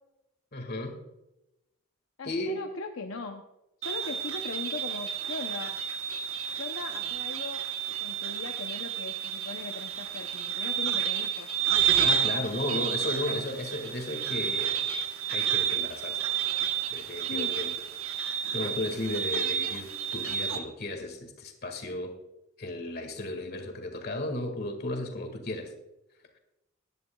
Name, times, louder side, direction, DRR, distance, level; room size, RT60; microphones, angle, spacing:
voice 1, 0.5-1.0 2.2-2.6 12.0-14.8 15.3-16.2 16.9-17.8 18.3-22.2 22.6-25.7, left 1 dB, 45° left, 5 dB, 1.9 m, -34 dB
voice 2, 2.2-3.5 3.8-5.8 6.6-7.7 8.0-11.6 17.3-17.6, left 3 dB, 70° left, 4 dB, 0.7 m, -39 dB
sound 1, 3.8-20.6, right 8 dB, 75° right, 1.1 m, -30 dB
19.0 x 11.0 x 2.3 m, 0.94 s
head